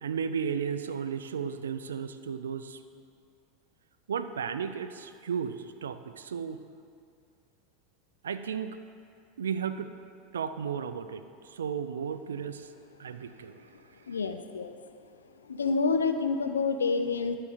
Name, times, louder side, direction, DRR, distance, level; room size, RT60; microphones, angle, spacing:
voice 1, 0.0-2.8 4.1-6.6 8.2-8.8 9.4-9.9 10.3-12.7 13.0-13.7, right 7 dB, 80° right, 11 dB, 0.4 m, -34 dB
voice 2, 14.1-14.8 15.5-17.3, left 4 dB, 85° left, 8 dB, 0.5 m, -28 dB
11.0 x 4.1 x 4.9 m, 2.3 s
hypercardioid pair, 90°, 0 cm